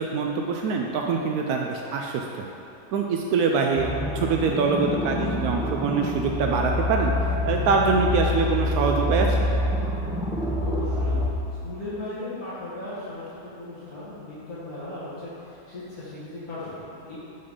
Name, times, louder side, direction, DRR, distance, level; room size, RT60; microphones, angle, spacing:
voice 1, 0.0-2.2 2.9-3.9 4.1-7.1 7.4-9.5, right 5 dB, 85° right, 1 dB, 1.1 m, -24 dB
sound 1, 3.7-11.3, left 1 dB, 5° right, 0.4 m, -26 dB
voice 2, 10.6-11.2 11.6-17.2, left 2 dB, 75° left, -13 dB, 2.3 m, -37 dB
6.5 x 5.9 x 5.3 m, 2.7 s
omnidirectional pair, 1.5 m